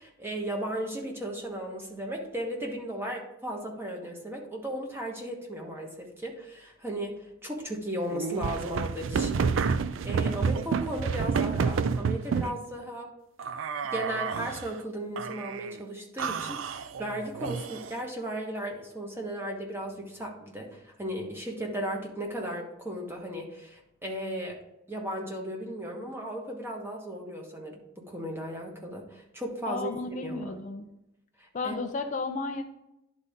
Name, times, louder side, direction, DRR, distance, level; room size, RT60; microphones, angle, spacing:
voice 1, 0.0-13.1 13.9-24.6 24.9-29.9 30.2-30.6 31.4-31.7, right 1 dB, 10° right, 0 dB, 1.3 m, -36 dB
sound 1, 8.1-12.6 13.4-14.7 15.2-15.7 16.2-18.0, right 5 dB, 80° right, 0.4 m, -29 dB
voice 2, 29.7-30.9 31.5-32.6, left 3 dB, 40° left, 4 dB, 0.5 m, -33 dB
11.0 x 4.0 x 3.6 m, 0.86 s
head